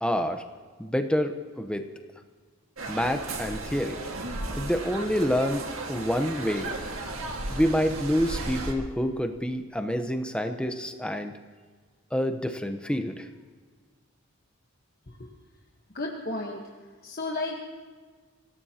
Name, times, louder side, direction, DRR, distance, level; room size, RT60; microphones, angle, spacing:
voice 1, 0.0-0.4 0.8-1.9 2.9-4.0 4.6-6.7 7.5-11.3 12.1-13.3, equal, 5° left, 6 dB, 0.8 m, -27 dB
sound 1, 2.8-8.7, right 2 dB, 80° right, 1.8 m, -35 dB
voice 2, 15.9-16.6 17.0-17.6, left 2 dB, 45° left, -1 dB, 1.3 m, -33 dB
26.5 x 17.0 x 2.9 m, 1.5 s
head